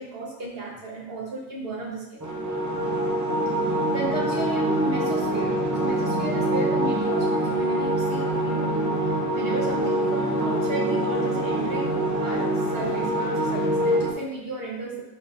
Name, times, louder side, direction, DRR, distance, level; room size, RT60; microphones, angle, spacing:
voice 1, 0.0-2.3 3.6-8.7 9.0-15.0, right 2 dB, 60° right, -3 dB, 1.5 m, -34 dB
sound 1, 2.2-14.1, right 1 dB, 20° right, 0.8 m, -25 dB
10.5 x 3.8 x 2.7 m, 0.90 s
omnidirectional pair, 1.2 m